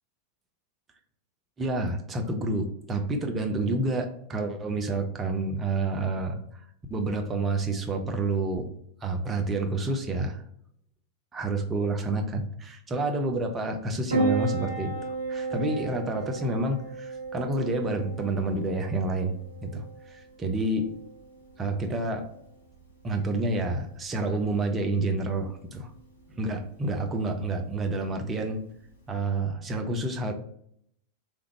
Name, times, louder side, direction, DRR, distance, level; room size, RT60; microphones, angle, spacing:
voice 1, 1.6-6.4 6.9-8.7 9.0-10.4 11.3-19.3 19.6-20.9 21.6-22.3 23.0-25.9 26.3-28.6 29.1-30.3, right 2 dB, 20° right, 4 dB, 0.7 m, -29 dB
Piano, 14.1-29.1, right 3 dB, 85° left, 1.3 m, -36 dB
3.6 x 3.4 x 3.2 m, 0.69 s
figure-of-eight pair, 90°, 0 cm